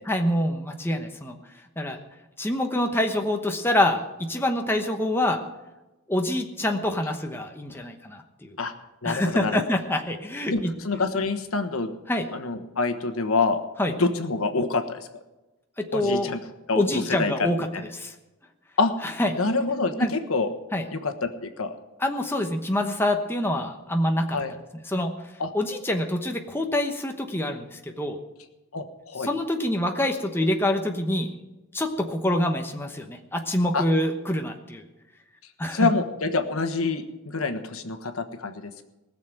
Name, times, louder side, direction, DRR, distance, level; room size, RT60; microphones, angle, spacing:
voice 1, 0.1-1.4 1.8-2.0 2.4-5.4 6.1-8.5 9.0-10.7 12.1-12.3 13.8-13.9 15.8-16.3 16.7-17.7 17.9-18.1 19.0-19.3 20.0-20.1 20.7-20.8 22.0-24.4 24.9-25.1 25.5-28.2 29.2-31.3 31.7-34.8 35.6-35.9, left 1 dB, 10° left, 4 dB, 1.0 m, -26 dB
voice 2, 9.0-9.6 10.5-11.9 12.3-13.6 13.9-15.1 15.9-16.4 16.7-17.5 17.7-17.8 18.8-18.9 19.4-20.5 20.9-21.7 24.3-24.5 25.4-25.5 28.7-29.3 33.7-33.8 35.7-38.8, left 3 dB, 85° left, 8 dB, 1.3 m, -26 dB
20.0 x 6.8 x 7.7 m, 1.1 s
head